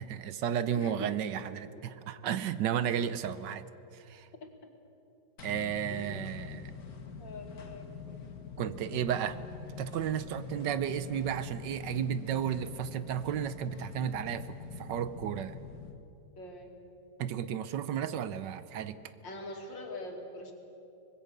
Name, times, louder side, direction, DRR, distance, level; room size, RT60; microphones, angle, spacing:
voice 1, 0.0-3.7 3.9-4.3 5.4-6.7 8.6-9.4 9.8-15.6 17.2-19.0, right 9 dB, 70° right, 13 dB, 1.3 m, -33 dB
voice 2, 0.7-1.1 4.4-4.5 5.9-6.3 7.2-7.9 16.4-16.7 19.2-20.5, left 2 dB, 70° left, 2 dB, 3.2 m, -43 dB
sound 1, 5.4-16.0, left 6 dB, 50° left, 1.9 m, -45 dB
25.0 x 20.5 x 6.7 m, 2.8 s
omnidirectional pair, 2.1 m